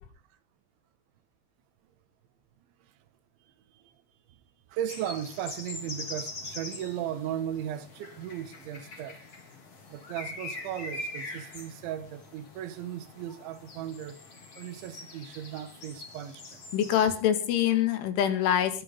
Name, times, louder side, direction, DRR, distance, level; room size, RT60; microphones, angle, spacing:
voice 1, 4.7-9.2 9.9-14.2 14.6-16.6, right 11 dB, 75° right, 3.8 m, -36 dB
sound 1, 4.9-17.2, left 2 dB, 35° left, 4.4 m, -43 dB
voice 2, 16.7-18.8, left 10 dB, 80° left, 4.5 m, -25 dB
22.5 x 8.5 x 5.4 m
omnidirectional pair, 5.6 m